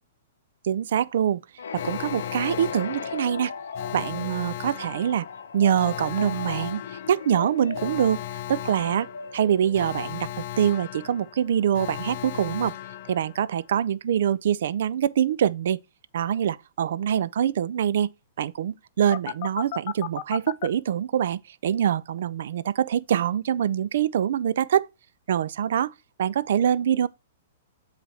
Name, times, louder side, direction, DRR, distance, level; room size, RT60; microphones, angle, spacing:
voice 1, 0.6-1.4 1.7-3.5 3.9-5.3 5.5-8.2 8.5-12.8 13.1-15.8 16.1-18.1 18.4-24.9 25.3-25.9 26.2-27.1, right 9 dB, 70° right, 0.4 m, -24 dB
sound 1, 1.6-10.3, left 6 dB, 90° left, 0.7 m, -37 dB
Alarm, 1.7-13.7 19.1-20.7, left 13 dB, 50° left, 0.6 m, -37 dB
8.1 x 3.3 x 6.2 m
hypercardioid pair, 140°, 0 cm